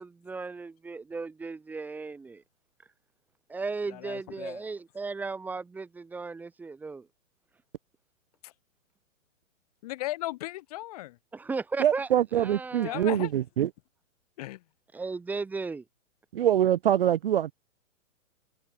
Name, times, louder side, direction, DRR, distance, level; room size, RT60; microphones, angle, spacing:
voice 1, 0.0-2.4 3.5-7.1 11.3-12.1 12.4-13.1 14.9-15.8, right 4 dB, 5° right, 1.5 m, -36 dB
voice 2, 3.9-4.6 8.4-8.5 9.8-11.2 12.8-13.3 14.4-14.6, left 17 dB, 30° left, 1.4 m, -36 dB
voice 3, 11.8-13.7 16.3-17.5, right 11 dB, 45° right, 0.6 m, -24 dB
open air
hypercardioid pair, 170°, 40 cm